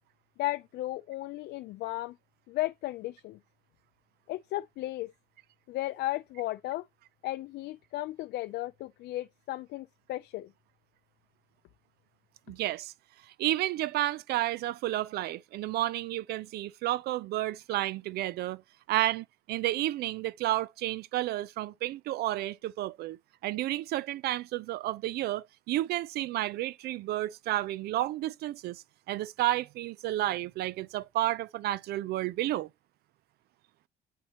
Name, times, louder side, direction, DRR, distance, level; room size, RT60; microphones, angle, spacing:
voice 1, 0.4-2.2 2.5-3.4 4.3-5.1 5.7-6.9 7.2-10.5, left 16 dB, 75° left, 0.4 m, -35 dB
voice 2, 12.5-12.9 13.4-18.6 18.9-23.2 23.4-32.7, right 15 dB, 70° right, 0.5 m, -31 dB
9.2 x 4.3 x 2.8 m
cardioid pair, 110°, 17 cm